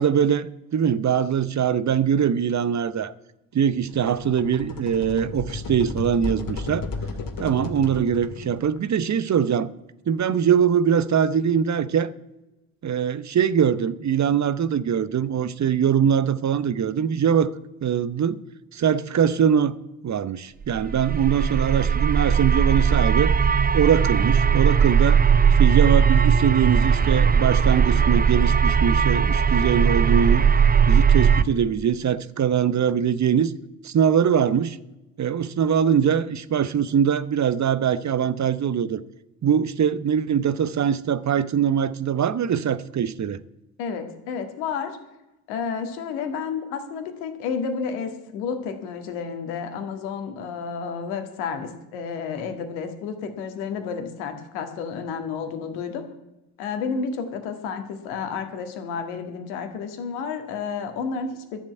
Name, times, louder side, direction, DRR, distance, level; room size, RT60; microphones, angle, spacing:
voice 1, 0.0-3.1 3.5-6.9 7.4-9.7 10.1-12.1 12.8-17.5 17.8-18.4 18.7-19.7 20.0-23.3 23.7-25.2 25.6-30.4 30.9-33.5 33.8-34.8 35.2-39.0 39.4-43.4, right 8 dB, 40° right, 1.0 m, -22 dB
sound 1, 3.9-8.8, left 3 dB, 45° left, 2.3 m, -33 dB
sound 2, 20.8-31.4, right 6 dB, 20° right, 0.6 m, -19 dB
voice 2, 43.8-45.0 45.5-56.0 56.6-61.6, left 6 dB, 75° left, 2.0 m, -31 dB
12.5 x 7.4 x 9.3 m
hypercardioid pair, 45°, 45 cm